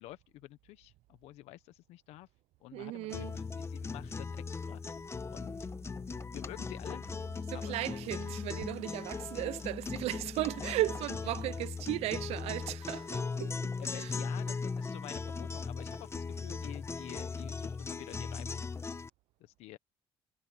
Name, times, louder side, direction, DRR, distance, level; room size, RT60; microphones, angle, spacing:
voice 1, 0.0-2.3 2.6-5.0 5.3-5.6 6.3-7.1 7.5-8.4 10.5-10.8 13.8-18.8 19.4-19.8, left 17 dB, 75° left, 1.1 m, -49 dB
voice 2, 2.7-3.4 7.5-14.1, right 16 dB, 75° right, 0.8 m, -36 dB
sound 1, 3.1-19.1, left 4 dB, 25° left, 1.1 m, -38 dB
supercardioid pair, 80°, 11 cm